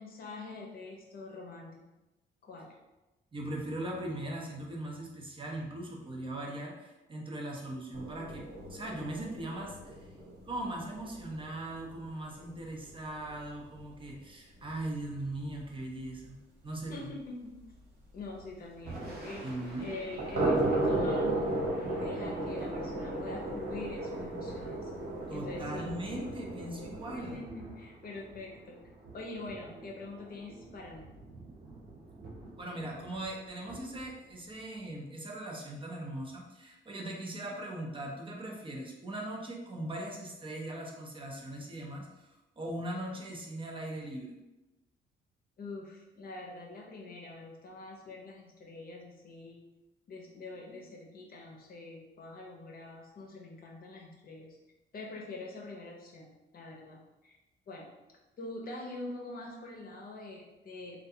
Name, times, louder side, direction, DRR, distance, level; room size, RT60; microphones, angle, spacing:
voice 1, 0.0-1.8 2.4-2.7 16.9-17.5 18.1-19.4 19.8-21.5 21.9-24.9 25.3-25.8 27.1-28.8 29.1-31.1 45.6-49.6 50.1-54.6 54.9-57.4 57.7-57.9 58.4-61.1, left 2 dB, 50° left, -1 dB, 0.6 m, -44 dB
voice 2, 3.3-10.1 10.5-17.1 19.4-19.9 25.3-27.4 32.6-42.3 42.6-44.3, right 1 dB, 25° right, -1 dB, 0.5 m, -40 dB
sound 1, 7.9-13.8 14.1-14.2 14.6-14.7 15.1-15.2 15.5-15.6 18.4-18.5 20.0-27.4, right 2 dB, 65° right, 1.4 m, -35 dB
Thunder / Rain, 18.7-35.0, right 2 dB, 50° right, 0.9 m, -48 dB
2.4 x 2.2 x 2.7 m, 1.0 s
cardioid pair, 90°, 20 cm